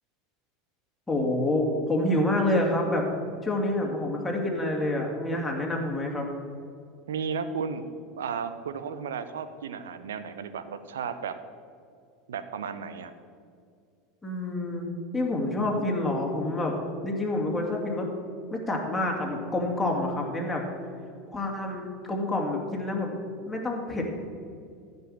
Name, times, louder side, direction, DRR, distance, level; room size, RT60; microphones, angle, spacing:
voice 1, 1.1-3.0 3.4-6.3 14.2-16.7 17.0-18.1 18.5-20.6 21.3-23.1 23.5-24.0, left 1 dB, 10° left, -1 dB, 2.5 m, -27 dB
voice 2, 7.1-7.8 8.2-11.4 12.3-13.1, right 6 dB, 75° right, 11 dB, 0.7 m, -34 dB
15.0 x 5.4 x 6.4 m, 2.3 s
figure-of-eight pair, 80°, 0 cm